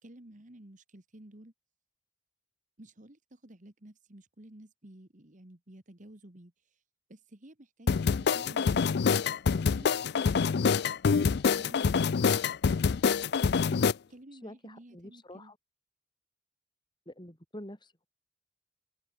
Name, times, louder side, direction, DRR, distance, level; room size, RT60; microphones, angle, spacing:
voice 1, 0.0-1.5 2.8-6.8 7.1-9.1 9.5-10.8 11.2-12.5 13.7-15.5, right 1 dB, 40° right, 1.8 m, -53 dB
sound 1, 7.9-13.9, left 5 dB, 60° left, 0.4 m, -26 dB
voice 2, 14.4-15.6 17.1-18.1, left 1 dB, 25° left, 5.7 m, -46 dB
head